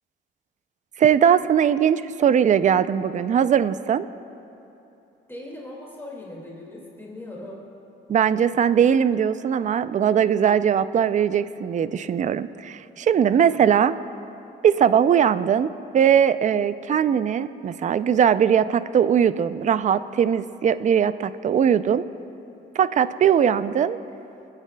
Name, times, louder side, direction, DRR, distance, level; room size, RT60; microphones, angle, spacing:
voice 1, 1.0-4.1 8.1-14.0 14.6-22.0 22.8-24.0, right 8 dB, 40° right, 14 dB, 0.4 m, -20 dB
voice 2, 5.3-7.6 13.3-13.7, left 1 dB, 10° left, -3 dB, 2.1 m, -39 dB
24.5 x 9.6 x 2.2 m, 3.0 s
cardioid pair, 90°, 20 cm